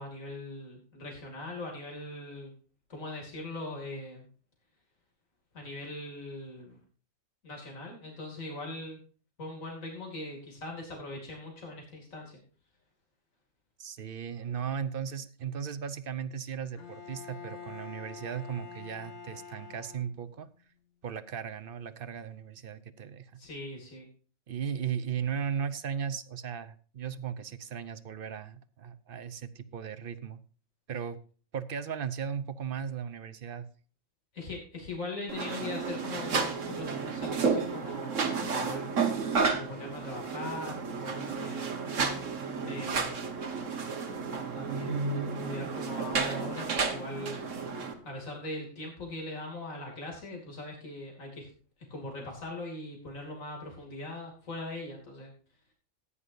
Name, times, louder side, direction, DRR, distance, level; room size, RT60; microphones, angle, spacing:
voice 1, 0.0-2.5 2.9-4.3 5.5-6.8 7.4-9.0 9.4-12.4 23.4-24.1 34.3-39.1 39.5-41.9 42.6-43.5 44.5-51.5 51.9-55.3, left 2 dB, 90° left, 0 dB, 3.1 m, -41 dB
voice 2, 13.8-20.5 21.0-23.3 24.5-30.4 30.9-31.2 31.5-33.7, right 7 dB, 50° right, 13 dB, 0.8 m, -36 dB
Bowed string instrument, 16.8-20.5, left 6 dB, 70° left, 1.8 m, -46 dB
sound 1, 35.3-47.9, right 5 dB, 70° right, 1.6 m, -32 dB
15.0 x 9.7 x 2.7 m, 0.39 s
omnidirectional pair, 1.4 m